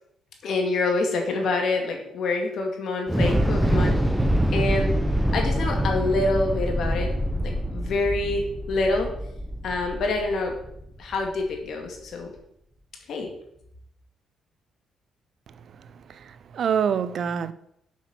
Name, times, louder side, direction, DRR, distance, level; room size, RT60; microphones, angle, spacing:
voice 1, 0.4-4.0 4.5-4.9 5.3-7.1 7.4-9.1 9.6-10.5 11.0-12.3 13.1-13.3, left 3 dB, 65° left, 2.2 m, -26 dB
Thunder / Explosion, 3.1-11.3, equal, 10° right, 0.8 m, -25 dB
voice 2, 16.1-17.5, right 7 dB, 60° right, 0.5 m, -26 dB
7.1 x 6.1 x 5.9 m
cardioid pair, 90°, 0 cm